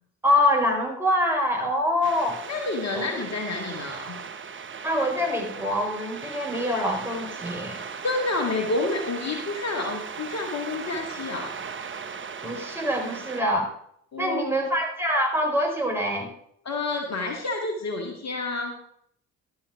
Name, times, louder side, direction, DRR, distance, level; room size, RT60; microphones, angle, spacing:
voice 1, 0.2-2.4 2.9-3.1 4.8-7.8 12.4-13.7 14.2-16.3, left 1 dB, 5° right, 0 dB, 3.9 m, -25 dB
sound 1, 2.0-13.4, right 6 dB, 30° right, 0.9 m, -38 dB
voice 2, 2.5-4.2 8.0-11.5 14.1-14.7 16.7-18.8, left 3 dB, 40° left, 2 dB, 1.9 m, -29 dB
11.5 x 5.7 x 5.8 m, 0.69 s
hypercardioid pair, 50°, 40 cm